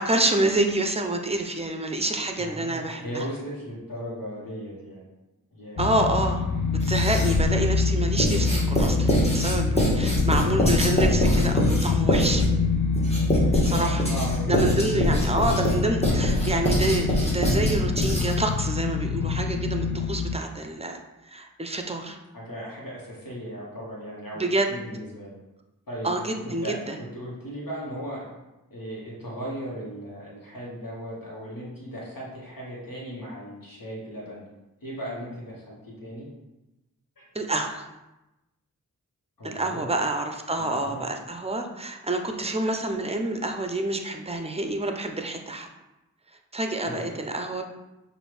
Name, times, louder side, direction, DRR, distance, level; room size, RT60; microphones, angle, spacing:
voice 1, 0.0-3.2 5.8-6.4 6.7-12.4 13.7-14.1 14.5-21.0 21.3-22.2 24.3-24.7 26.0-27.0 37.3-37.9 39.4-45.7 46.5-47.6, right 2 dB, 20° right, 4 dB, 0.6 m, -27 dB
voice 2, 2.3-5.0 5.5-5.9 13.1-14.6 15.0-15.6 22.3-25.4 25.9-28.3 28.7-34.4 34.8-36.3 37.2-37.3 39.4-39.9 40.6-41.0 46.8-47.2, equal, 80° left, -5 dB, 1.3 m, -37 dB
sound 1, 5.8-20.4, left 4 dB, 60° left, 0.5 m, -25 dB
Writing, 6.8-7.5 8.2-18.5, equal, 20° left, 1.6 m, -25 dB
5.9 x 2.6 x 3.3 m, 0.98 s
wide cardioid pair, 40°, 34 cm